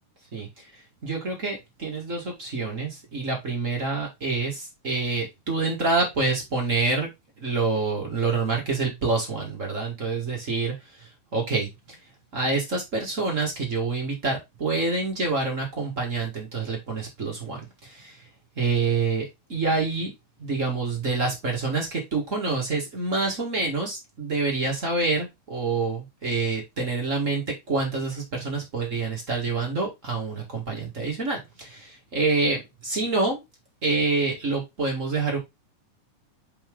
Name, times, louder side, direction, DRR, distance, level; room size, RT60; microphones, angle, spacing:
voice 1, 0.3-0.7 1.0-7.1 7.4-12.0 12.3-18.2 18.5-20.1 20.4-33.4 33.8-35.4, right 3 dB, 35° right, 1.5 m, -27 dB
5.7 x 4.8 x 3.7 m
omnidirectional pair, 3.5 m